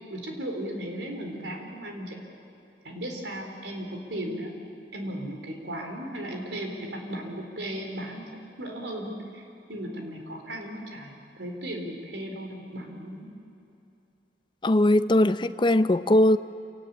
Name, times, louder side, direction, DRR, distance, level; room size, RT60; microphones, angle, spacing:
voice 1, 0.1-2.2 2.8-4.5 4.9-8.2 8.6-13.3, right 1 dB, 85° right, 2 dB, 4.2 m, -36 dB
voice 2, 14.6-16.4, left 1 dB, 25° left, 12 dB, 0.6 m, -20 dB
28.0 x 18.5 x 8.7 m, 2.8 s
head